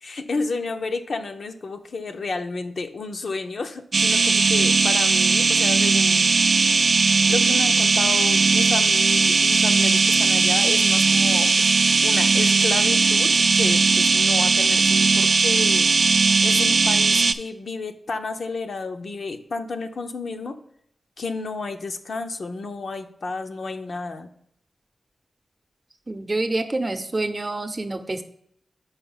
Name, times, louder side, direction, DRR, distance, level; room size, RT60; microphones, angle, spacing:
voice 1, 0.0-6.4 7.3-11.7 12.0-15.9 16.4-20.6 21.2-24.3, left 3 dB, 70° left, 6 dB, 0.6 m, -31 dB
sound 1, 3.9-17.3, right 4 dB, 60° right, 0.3 m, -18 dB
voice 2, 26.1-28.2, right 2 dB, 35° right, 8 dB, 0.7 m, -27 dB
5.6 x 4.3 x 5.6 m, 0.70 s
cardioid pair, 60°, 0 cm